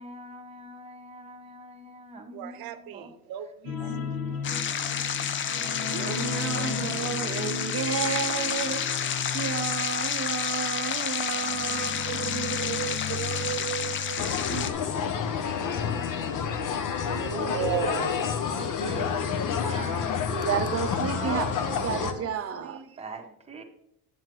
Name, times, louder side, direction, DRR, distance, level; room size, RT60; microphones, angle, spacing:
voice 1, 0.0-3.1 3.8-5.9 11.3-12.0 14.0-15.0 15.7-16.7 17.0-17.9 18.5-20.4 21.1-23.6, right 2 dB, 15° right, 1.2 m, -44 dB
voice 2, 2.3-3.8 6.5-7.1 11.6-15.2 15.9-16.1 17.5-18.2 18.8-19.1, right 12 dB, 80° right, 0.7 m, -35 dB
sound 1, 3.7-16.9 17.2-17.4 17.8-17.9, left 6 dB, 85° left, 1.2 m, -37 dB
sound 2, 4.4-14.7, left 8 dB, 35° left, 0.4 m, -30 dB
voice 3, 5.9-8.8 9.3-12.4 17.1-17.8 20.3-21.5 21.8-22.8, right 8 dB, 40° right, 0.7 m, -32 dB
sound 3, 14.2-22.1, left 7 dB, 60° left, 0.8 m, -29 dB
7.7 x 7.6 x 3.1 m
cardioid pair, 120°, 35 cm